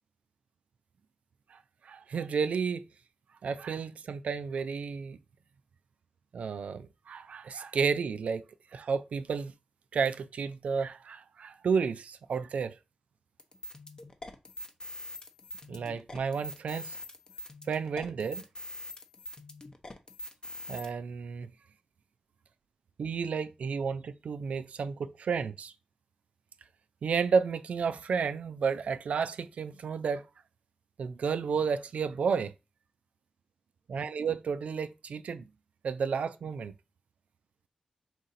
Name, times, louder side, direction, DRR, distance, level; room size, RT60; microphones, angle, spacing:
voice 1, 1.5-2.9 3.4-5.2 6.3-8.4 8.7-9.5 9.9-12.8 15.7-17.0 17.7-18.4 20.7-21.5 23.0-25.7 27.0-30.2 31.0-32.5 33.9-35.4 35.8-36.7, right 6 dB, 75° right, 0.3 m, -32 dB
sound 1, 13.4-20.9, left 1 dB, 35° left, 0.7 m, -44 dB
3.9 x 2.6 x 4.0 m
cardioid pair, 75°, 2 cm